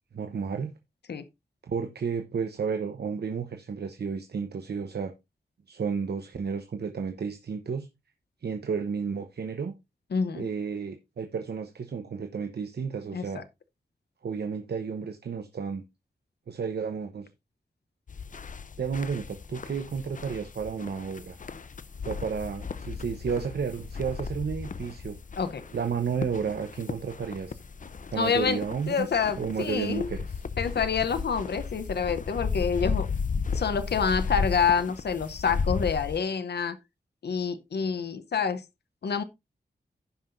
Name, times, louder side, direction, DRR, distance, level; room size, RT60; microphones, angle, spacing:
voice 1, 0.1-0.7 1.6-5.1 5.7-7.9 8.4-9.7 10.3-13.4 14.2-15.8 16.5-17.3 18.8-21.4 22.0-25.2 25.7-27.6 28.1-29.1 29.4-30.4, right 6 dB, 70° right, 0.9 m, -32 dB
voice 2, 10.1-10.5 13.1-13.4 25.4-25.6 28.1-28.6 28.9-30.1 30.6-33.1 33.5-36.8 37.2-38.6 39.0-39.2, left 6 dB, 80° left, 0.8 m, -27 dB
sound 1, 18.1-36.2, left 5 dB, 50° left, 0.6 m, -35 dB
16.0 x 5.7 x 2.6 m
wide cardioid pair, 90°, 17 cm